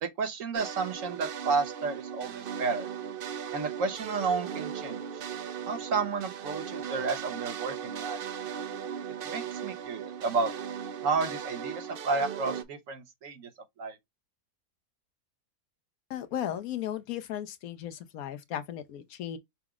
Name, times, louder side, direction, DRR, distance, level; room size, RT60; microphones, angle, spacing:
voice 1, 0.0-2.9 3.5-5.0 5.7-8.2 9.2-10.5 11.0-13.5 13.8-14.0, right 4 dB, 60° right, 1.2 m, -31 dB
sound 1, 0.5-12.6, right 8 dB, 90° right, 0.4 m, -38 dB
voice 2, 16.1-19.4, left 10 dB, 75° left, 1.1 m, -36 dB
5.8 x 2.0 x 3.5 m
omnidirectional pair, 1.6 m